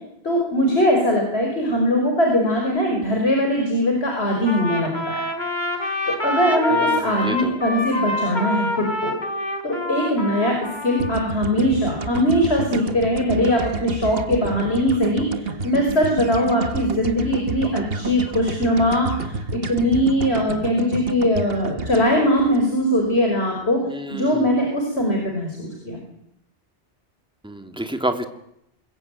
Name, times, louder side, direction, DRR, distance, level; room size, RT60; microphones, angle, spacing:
voice 1, 0.2-5.2 5.7-9.1 9.6-23.8 24.1-26.0, equal, 80° left, 2 dB, 5.8 m, -21 dB
Trumpet, 4.5-11.4, left 1 dB, 45° left, 4.0 m, -26 dB
voice 2, 6.7-7.6 23.9-24.5 27.4-28.2, right 1 dB, 5° right, 6 dB, 2.2 m, -29 dB
sound 1, 11.0-23.2, right 4 dB, 65° right, 1.5 m, -30 dB
27.5 x 21.5 x 9.2 m, 0.79 s
omnidirectional pair, 1.1 m